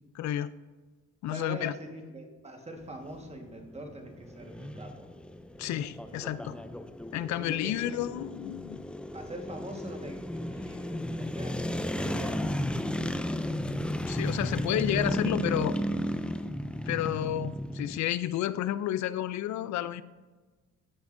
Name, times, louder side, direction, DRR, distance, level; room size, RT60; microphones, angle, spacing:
voice 1, 0.1-0.5 1.2-1.7 5.6-6.6 7.1-8.8 14.1-15.8 16.9-20.0, left 12 dB, 65° left, 16 dB, 0.4 m, -31 dB
voice 2, 1.3-5.1 7.4-8.0 9.1-11.6 11.9-12.6, right 1 dB, 20° right, 3 dB, 1.4 m, -43 dB
sound 1, 2.8-18.0, left 1 dB, 5° left, 0.3 m, -34 dB
14.0 x 7.0 x 2.6 m, 1.3 s
cardioid pair, 90°, 30 cm